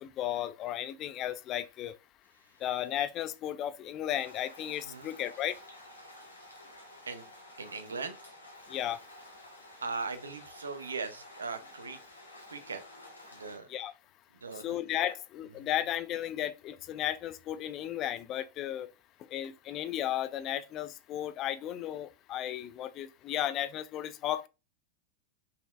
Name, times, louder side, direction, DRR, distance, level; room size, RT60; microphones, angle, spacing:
voice 1, 0.0-1.9 2.6-5.6 8.7-9.0 13.7-13.9 14.6-18.9 19.3-24.5, left 12 dB, 35° left, 0.4 m, -34 dB
sound 1, 4.1-13.6, left 1 dB, 85° left, 1.4 m, -51 dB
voice 2, 7.6-8.2 9.8-12.0 12.5-12.8 13.3-13.7 14.4-14.7, right 4 dB, 75° right, 0.7 m, -39 dB
5.6 x 3.9 x 2.4 m
figure-of-eight pair, 90°, 0 cm